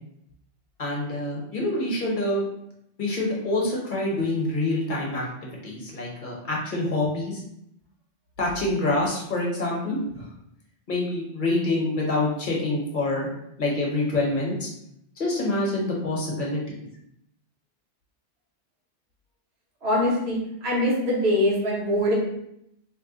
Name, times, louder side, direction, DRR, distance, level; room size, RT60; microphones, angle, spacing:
voice 1, 0.8-2.4 3.0-7.4 8.4-10.3 10.9-13.3 13.6-14.7 15.2-16.8, left 2 dB, 45° left, -3 dB, 0.9 m, -26 dB
voice 2, 19.8-22.1, left 1 dB, 60° right, -6 dB, 1.3 m, -23 dB
2.9 x 2.1 x 3.8 m, 0.77 s
omnidirectional pair, 1.2 m